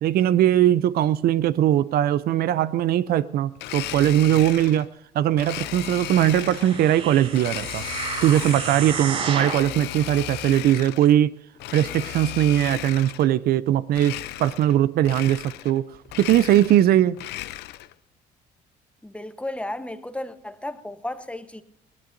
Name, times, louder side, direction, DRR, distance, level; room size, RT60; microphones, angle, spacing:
voice 1, 0.0-4.9 5.1-7.8 8.2-11.3 11.7-15.8 16.2-17.2, right 12 dB, 65° right, 0.5 m, -20 dB
Domestic sounds home sounds, 3.6-4.9 5.4-6.8 7.3-8.9 9.3-11.2 11.6-13.3 13.9-14.8 15.0-15.8 16.1-17.9, left 15 dB, 80° left, 0.6 m, -35 dB
sound 1, 6.1-9.7 10.3-10.4, right 5 dB, 40° right, 5.0 m, -31 dB
voice 2, 19.0-21.6, left 1 dB, 5° left, 0.9 m, -34 dB
21.5 x 18.0 x 2.6 m
cardioid pair, 110°, 17 cm